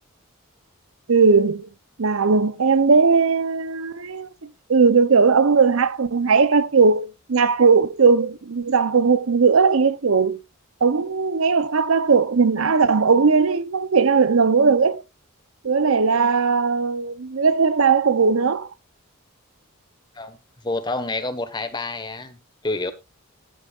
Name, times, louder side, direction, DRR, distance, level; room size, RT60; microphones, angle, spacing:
voice 1, 1.1-1.7 2.0-4.3 4.7-10.4 10.8-15.0 15.6-18.7, right 5 dB, 70° right, 0.7 m, -18 dB
voice 2, 20.6-22.9, left 2 dB, 20° left, 1.3 m, -28 dB
13.0 x 11.5 x 2.4 m
head